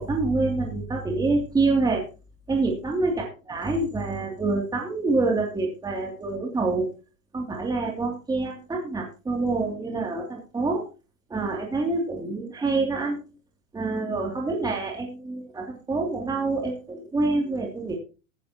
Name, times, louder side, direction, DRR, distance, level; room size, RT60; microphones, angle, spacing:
voice 1, 0.0-2.0 2.5-6.9 7.3-10.8 11.3-13.2 13.7-18.0, right 3 dB, 10° right, 0 dB, 2.8 m, -26 dB
15.0 x 13.0 x 3.0 m, 0.34 s
hypercardioid pair, 135°, 40 cm